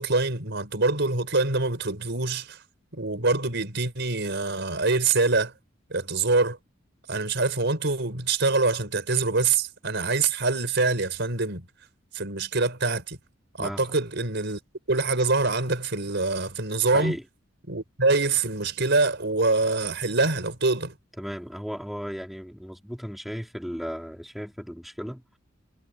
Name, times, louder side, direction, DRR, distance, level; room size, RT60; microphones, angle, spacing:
voice 1, 0.0-2.6 2.9-5.5 5.9-6.6 7.1-11.6 12.1-13.2 13.6-14.6 14.9-17.2 17.7-20.9, right 3 dB, 60° right, 5.0 m, -25 dB
voice 2, 13.6-13.9 16.9-17.2 21.2-25.2, equal, ahead, 3.6 m, -35 dB
head